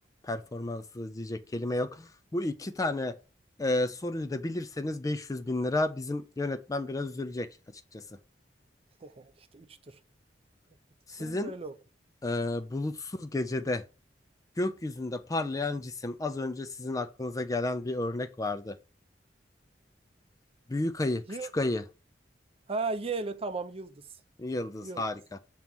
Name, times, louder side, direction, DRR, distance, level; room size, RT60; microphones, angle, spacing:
voice 1, 0.2-3.2 3.6-7.5 7.9-8.0 11.1-11.5 12.2-13.8 14.6-18.8 20.7-21.2 21.5-21.8 24.4-25.4, left 2 dB, 20° left, 0.4 m, -32 dB
voice 2, 9.0-10.0 11.2-11.7 21.3-21.5 22.7-24.0 24.8-25.0, right 3 dB, 35° right, 0.6 m, -36 dB
7.3 x 3.0 x 5.2 m
head